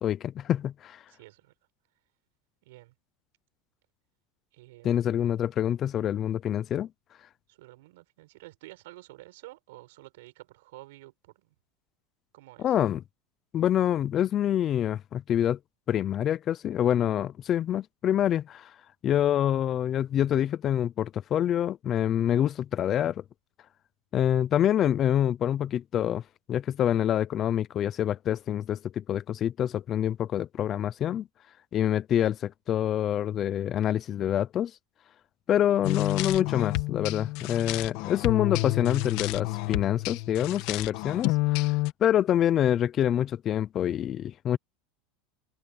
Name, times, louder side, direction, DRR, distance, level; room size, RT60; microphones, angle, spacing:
voice 1, 0.0-1.0 4.8-6.9 12.6-13.0 13.5-15.6 15.9-18.7 19.0-23.2 24.1-26.2 26.5-31.3 31.7-34.7 35.5-44.6, left 10 dB, 25° left, 0.4 m, -26 dB
voice 2, 1.1-1.5 2.6-2.9 4.5-5.1 7.5-11.5 12.3-12.8, right 19 dB, 70° right, 6.3 m, -50 dB
sound 1, 35.8-41.9, left 19 dB, 50° left, 1.6 m, -29 dB
supercardioid pair, 175°, 0 cm